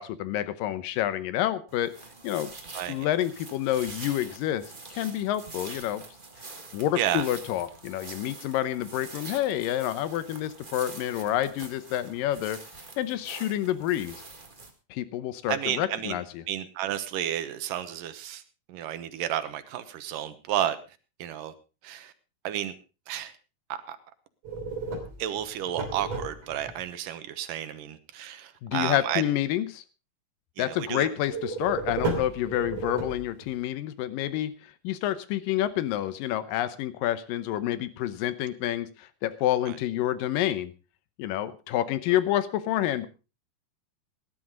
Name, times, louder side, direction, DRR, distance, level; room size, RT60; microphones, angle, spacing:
voice 1, 0.0-1.9 2.2-2.5 2.9-4.6 4.9-6.0 6.7-12.6 13.0-14.2 14.9-16.4 28.6-29.8 30.6-34.5 34.8-40.7 41.2-43.1, left 12 dB, 85° left, 14 dB, 2.6 m, -28 dB
sound 1, 1.7-14.7, right 3 dB, 25° right, 1.0 m, -45 dB
voice 2, 2.7-3.1 7.0-7.2 15.5-16.2 16.5-18.4 18.7-20.8 21.2-21.5 21.8-22.1 22.4-22.8 23.1-23.3 23.7-24.0 25.2-29.2 30.6-31.1 39.7-39.8, right 11 dB, 80° right, 11 dB, 2.7 m, -31 dB
sound 2, 24.4-26.8 31.3-33.6, right 3 dB, 50° right, 4.1 m, -33 dB
18.5 x 11.0 x 3.8 m, 0.31 s
omnidirectional pair, 3.9 m